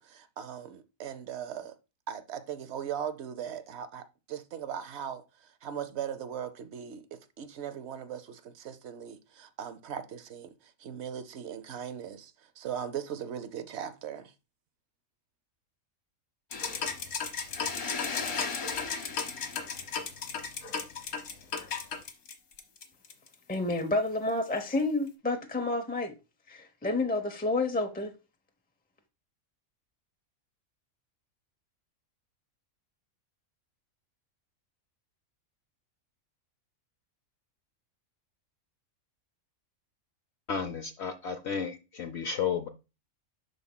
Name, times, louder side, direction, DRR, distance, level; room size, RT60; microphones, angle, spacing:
voice 1, 0.0-1.8 2.1-14.3, right 8 dB, 60° right, 0.8 m, -39 dB
sound 1, 16.5-23.3, left 5 dB, 80° left, 1.5 m, -34 dB
voice 2, 23.5-26.1 26.5-28.1, left 2 dB, 10° left, 0.4 m, -29 dB
voice 3, 40.5-42.7, left 6 dB, 60° left, 0.8 m, -33 dB
12.0 x 4.1 x 2.2 m
omnidirectional pair, 1.5 m